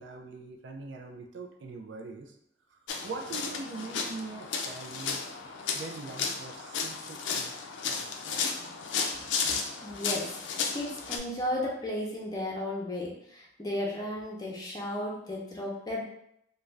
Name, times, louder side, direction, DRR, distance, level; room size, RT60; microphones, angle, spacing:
voice 1, 0.0-2.3 2.7-5.2 5.7-7.5 7.8-8.5, right 3 dB, 70° right, 3 dB, 0.4 m, -42 dB
sound 1, 2.9-11.2, left 5 dB, 85° left, 0.4 m, -34 dB
voice 2, 9.5-10.4 10.7-16.0, left 1 dB, 20° left, -3 dB, 0.6 m, -34 dB
2.5 x 2.2 x 3.2 m, 0.76 s
head